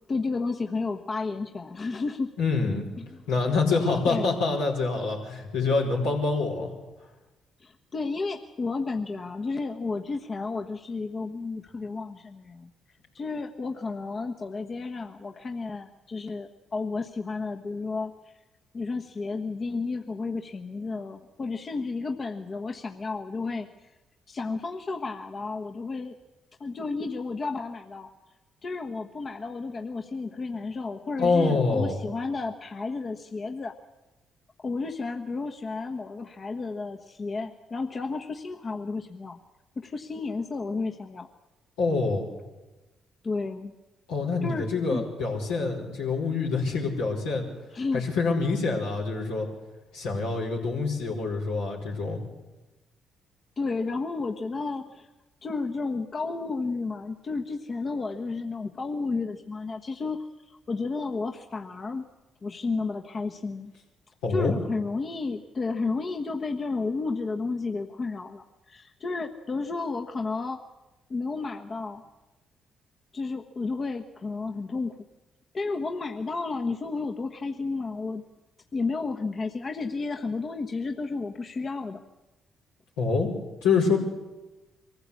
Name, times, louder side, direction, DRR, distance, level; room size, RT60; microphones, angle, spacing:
voice 1, 0.0-2.3 3.0-3.2 4.1-4.4 7.6-12.7 13.1-18.3 18.7-23.9 24.3-26.1 26.6-28.1 28.6-33.7 34.6-39.4 39.8-41.3 43.2-43.7 44.4-45.0 47.7-48.1 53.6-55.1 55.4-62.0 62.4-63.7 64.3-70.6 71.1-72.0 73.1-75.0 75.5-78.2 78.7-82.0, left 3 dB, 45° left, 4 dB, 1.3 m, -32 dB
voice 2, 2.4-2.9 3.3-6.7 31.2-32.0 41.8-42.3 44.1-47.4 47.9-49.5 49.9-52.2 64.2-64.5 83.0-83.3 83.6-84.0, left 4 dB, 90° left, -3 dB, 4.8 m, -26 dB
23.5 x 15.0 x 8.4 m, 1.1 s
hypercardioid pair, 50°, 0 cm